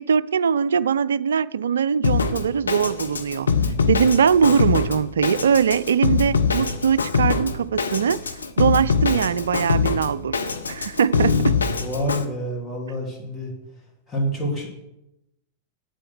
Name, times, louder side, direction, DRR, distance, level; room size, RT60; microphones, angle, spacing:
voice 1, 0.0-3.5 3.9-11.6, right 7 dB, 65° right, 0.3 m, -21 dB
Drum kit, 2.0-12.2, left 5 dB, 75° left, 0.8 m, -23 dB
voice 2, 11.8-13.5 14.1-14.7, equal, 15° left, 3.5 m, -27 dB
8.4 x 7.5 x 6.3 m
figure-of-eight pair, 90°, 0 cm